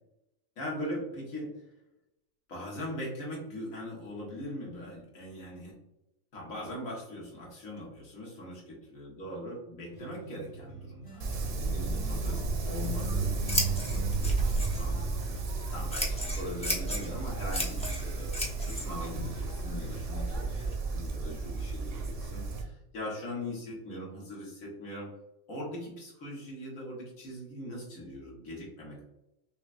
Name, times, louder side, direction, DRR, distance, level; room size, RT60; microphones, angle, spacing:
voice 1, 0.6-1.6 2.5-5.8 6.3-15.4 15.7-18.3 18.6-25.1 25.5-29.0, left 1 dB, 90° left, -3 dB, 1.7 m, -41 dB
sound 1, 9.8-11.6 11.9-14.7, right 7 dB, 45° left, 1.2 m, -38 dB
Wind, 11.2-22.6, right 3 dB, 70° right, 1.1 m, -33 dB
Scissors, 12.6-20.7, left 1 dB, 10° left, 0.4 m, -37 dB
5.8 x 2.2 x 2.5 m, 0.88 s
omnidirectional pair, 1.4 m